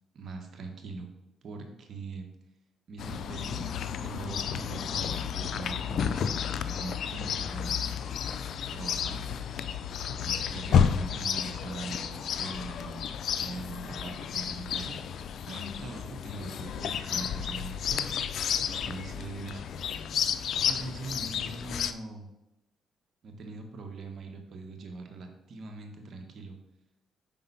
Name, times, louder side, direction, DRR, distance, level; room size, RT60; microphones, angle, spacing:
voice 1, 0.1-1.1 1.4-2.3 2.9-3.7 4.0-7.9 8.7-9.2 10.2-13.1 13.4-15.0 15.5-18.0 18.7-19.6 20.6-22.3 23.2-26.6, right 3 dB, 60° right, 4 dB, 1.2 m, -41 dB
Chirp tweet, 3.0-21.9, left 7 dB, 65° left, 0.3 m, -31 dB
5.4 x 3.8 x 5.4 m, 0.92 s
cardioid pair, 90°, 0 cm